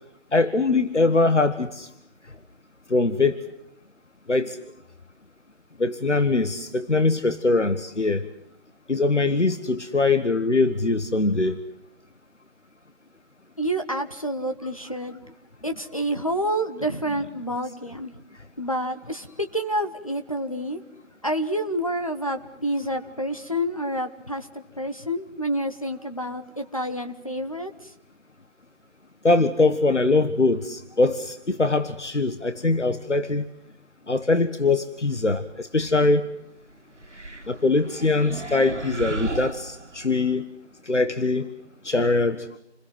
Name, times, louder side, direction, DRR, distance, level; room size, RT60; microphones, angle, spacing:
voice 1, 0.3-1.9 2.9-3.4 4.3-4.6 5.8-8.2 8.9-11.6 29.2-33.4 34.1-36.3 37.5-40.5 40.9-41.5 41.8-42.4, left 3 dB, 80° left, 11 dB, 1.6 m, -22 dB
voice 2, 13.6-15.2 15.6-18.2 18.6-20.8 21.2-27.9, equal, 30° left, 5 dB, 1.4 m, -28 dB
sound 1, 37.0-40.3, right 2 dB, 85° right, 2.2 m, -35 dB
29.0 x 21.5 x 7.8 m, 0.75 s
figure-of-eight pair, 180°, 35 cm